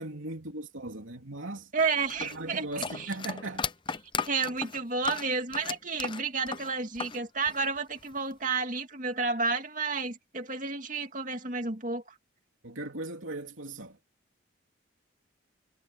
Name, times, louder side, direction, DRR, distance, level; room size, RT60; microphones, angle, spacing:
voice 1, 0.0-1.7 2.2-3.7 12.6-14.0, right 2 dB, 85° right, 3.0 m, -38 dB
voice 2, 1.7-3.1 4.2-12.0, right 4 dB, 40° right, 2.7 m, -31 dB
sound 1, 2.1-7.2 7.5-8.3, left 5 dB, 25° left, 0.6 m, -36 dB
head